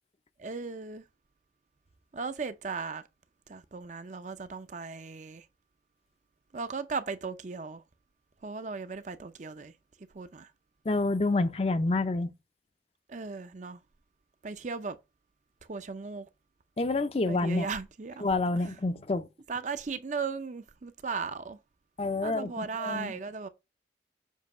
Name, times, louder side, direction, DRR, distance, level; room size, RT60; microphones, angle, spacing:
voice 1, 0.4-1.0 2.1-3.0 3.5-5.5 6.5-7.8 8.4-9.7 10.1-10.5 13.1-13.8 14.4-15.0 15.7-16.3 17.3-18.3 18.6-18.7 19.5-21.6 22.2-23.5, right 4 dB, 40° right, 0.5 m, -37 dB
voice 2, 10.9-12.3 16.8-17.7 18.2-19.3 22.0-23.1, left 2 dB, 35° left, 0.5 m, -28 dB
7.3 x 2.8 x 5.3 m
head